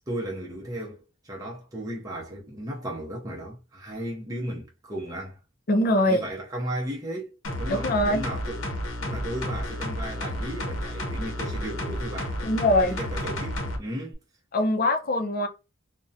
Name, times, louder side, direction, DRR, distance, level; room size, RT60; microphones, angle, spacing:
voice 1, 0.1-5.4 6.1-8.7 9.0-12.4 12.8-14.2, right 1 dB, 15° right, 0.6 m, -35 dB
voice 2, 5.7-6.2 7.8-8.2 12.4-13.0 14.5-15.5, left 1 dB, 45° left, 0.5 m, -22 dB
sound 1, 7.4-13.8 14.1-14.2, left 1 dB, 85° left, 0.7 m, -32 dB
2.4 x 2.1 x 2.6 m
head